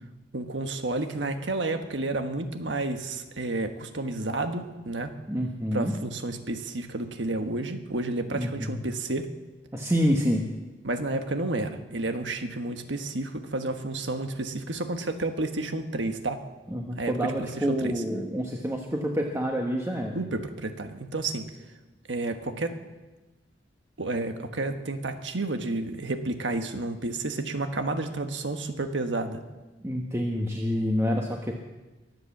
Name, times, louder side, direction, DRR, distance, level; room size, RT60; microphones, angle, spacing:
voice 1, 0.3-5.1 5.7-9.3 10.8-16.4 17.0-17.9 20.1-21.5 22.1-22.8 24.0-29.4, right 2 dB, 75° right, 7 dB, 1.4 m, -31 dB
voice 2, 5.3-5.9 8.3-8.8 9.7-10.4 16.7-20.2 29.8-31.5, equal, 15° right, 1 dB, 1.2 m, -27 dB
23.5 x 8.2 x 7.2 m, 1.2 s
head